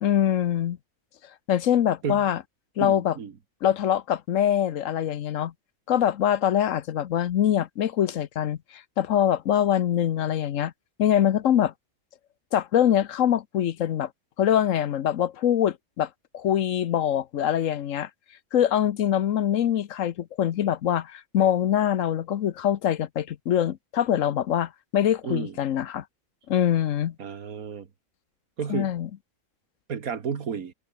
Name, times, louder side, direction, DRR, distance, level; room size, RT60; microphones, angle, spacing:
voice 1, 0.0-0.8 1.5-2.4 2.8-3.2 3.6-5.5 5.9-10.7 11.0-11.7 12.5-14.1 14.4-16.1 16.3-18.1 18.5-26.0 26.5-27.1 28.7-29.1, left 10 dB, 70° left, 1.1 m, -24 dB
voice 2, 2.8-3.3 25.2-25.6 27.2-27.9 28.6-28.9 29.9-30.7, right 6 dB, 80° right, 2.0 m, -32 dB
omnidirectional pair, 1.5 m